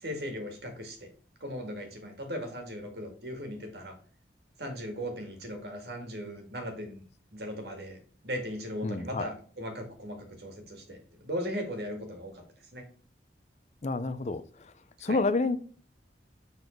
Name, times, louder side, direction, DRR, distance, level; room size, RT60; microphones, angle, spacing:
voice 1, 0.0-1.1 1.4-4.0 4.6-7.0 7.3-8.0 8.2-12.4 12.7-12.8 15.0-15.2, equal, 65° right, 4 dB, 2.0 m, -38 dB
voice 2, 8.8-9.3 13.8-14.7 15.0-15.6, left 3 dB, 40° left, 12 dB, 0.6 m, -29 dB
7.1 x 4.0 x 4.4 m, 0.43 s
head